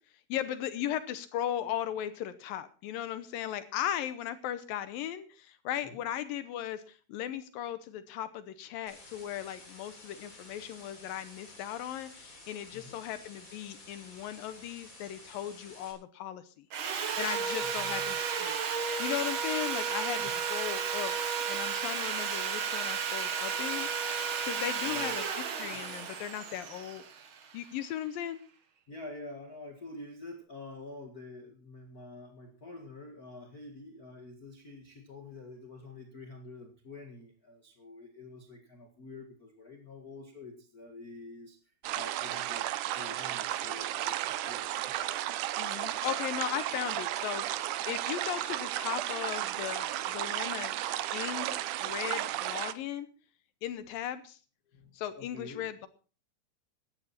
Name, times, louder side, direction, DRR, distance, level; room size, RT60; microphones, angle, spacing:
voice 1, 0.3-16.7 17.2-18.6 19.0-21.1 21.5-23.9 24.4-27.0 27.5-28.4 45.6-53.1 53.6-54.4 54.9-55.9, left 11 dB, 75° left, 12 dB, 2.4 m, -37 dB
sound 1, 8.9-15.9, left 2 dB, 20° left, 3.9 m, -52 dB
Sawing, 16.7-27.8, right 6 dB, 60° right, 1.3 m, -33 dB
voice 2, 17.6-18.2 20.2-20.4 24.7-25.3 25.7-25.8 28.9-41.6 41.9-42.6 42.9-44.7 54.7-55.7, left 2 dB, 35° left, 3 dB, 1.5 m, -47 dB
sound 2, 41.8-52.7, right 13 dB, 80° right, 1.8 m, -34 dB
16.0 x 11.5 x 4.3 m, 0.37 s
omnidirectional pair, 4.5 m